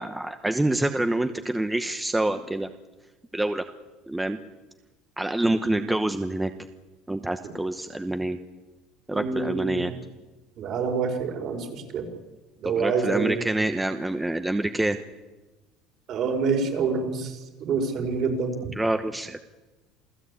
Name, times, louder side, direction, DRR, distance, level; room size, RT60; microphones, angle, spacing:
voice 1, 0.0-2.7 3.3-3.6 4.1-4.4 5.2-6.5 7.1-8.4 9.1-9.9 12.6-15.0 18.8-19.4, right 1 dB, 5° right, 8 dB, 1.0 m, -26 dB
voice 2, 9.1-9.8 10.6-12.0 12.6-13.4 16.1-17.3 17.6-18.6, right 5 dB, 50° right, 5 dB, 5.2 m, -27 dB
28.0 x 17.0 x 8.5 m, 1.1 s
cardioid pair, 135°, 0 cm